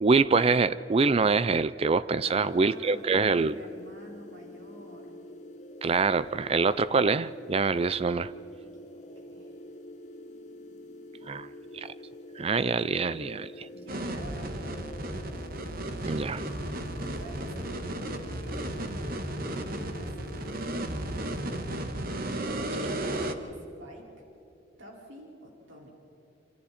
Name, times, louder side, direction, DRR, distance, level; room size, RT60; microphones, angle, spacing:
voice 1, 0.0-3.6 5.8-8.3 11.3-11.5 11.7-11.9 12.4-13.5 16.0-16.4, right 4 dB, 30° right, 15 dB, 0.4 m, -25 dB
sound 1, 2.2-21.8, left 1 dB, 40° left, 1.2 m, -46 dB
voice 2, 2.2-5.1 6.4-6.8 8.6-9.6 13.7-15.4 17.1-21.2 22.3-22.7 23.4-24.1 24.8-25.9, equal, 85° right, -2 dB, 5.0 m, -49 dB
sound 2, 13.9-23.3, right 1 dB, 50° right, 1.6 m, -34 dB
27.5 x 26.5 x 4.3 m, 3.0 s
head